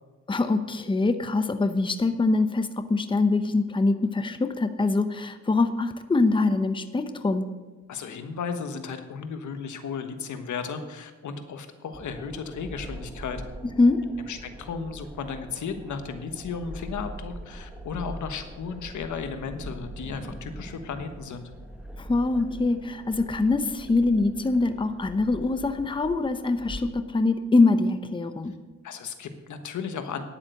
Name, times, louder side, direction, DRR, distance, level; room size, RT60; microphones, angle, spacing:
voice 1, 0.3-7.5 13.8-14.0 22.0-28.5, left 3 dB, 15° left, 9 dB, 0.8 m, -24 dB
voice 2, 7.9-13.4 14.3-21.5 28.8-30.2, left 5 dB, 80° left, 8 dB, 1.3 m, -35 dB
sound 1, 11.9-26.8, right 1 dB, 5° right, 1.4 m, -42 dB
10.5 x 8.5 x 6.6 m, 1.2 s
cardioid pair, 90°, 29 cm